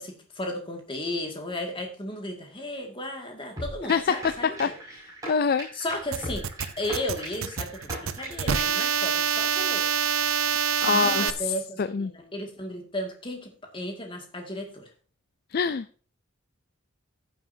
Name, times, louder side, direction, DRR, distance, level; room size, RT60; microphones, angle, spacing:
voice 1, 0.0-4.7 5.7-6.5 6.8-9.9 10.9-14.9, left 1 dB, 25° left, 3 dB, 2.1 m, -34 dB
sound 1, 3.6-8.9, right 1 dB, 15° right, 5.9 m, -39 dB
voice 2, 5.3-5.7 10.8-11.3 11.8-12.1 15.5-15.8, left 5 dB, 45° left, 14 dB, 0.4 m, -24 dB
sound 2, 6.1-11.3, right 7 dB, 70° right, 0.7 m, -26 dB
15.0 x 7.8 x 2.7 m, 0.42 s
head